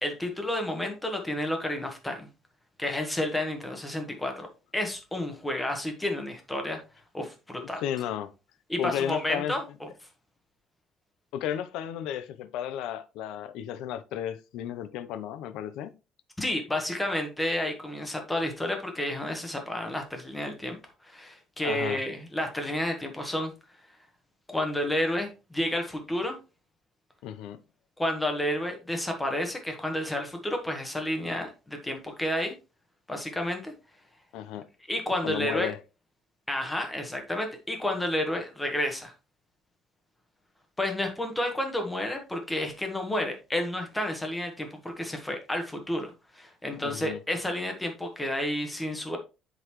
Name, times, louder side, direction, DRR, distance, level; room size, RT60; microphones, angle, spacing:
voice 1, 0.0-2.3 2.8-4.5 4.7-6.8 7.1-7.8 8.7-9.9 16.4-23.5 24.5-26.4 28.0-32.5 33.1-33.7 34.9-35.7 36.5-39.1 40.8-46.1 46.3-49.2, left 1 dB, 5° left, 1.3 m, -31 dB
voice 2, 7.6-8.3 8.8-9.6 11.3-15.9 21.6-22.0 27.2-27.6 34.3-34.7 35.2-35.8 46.8-47.2, left 10 dB, 85° left, 0.6 m, -33 dB
10.5 x 4.0 x 3.1 m
cardioid pair, 160°, 0 cm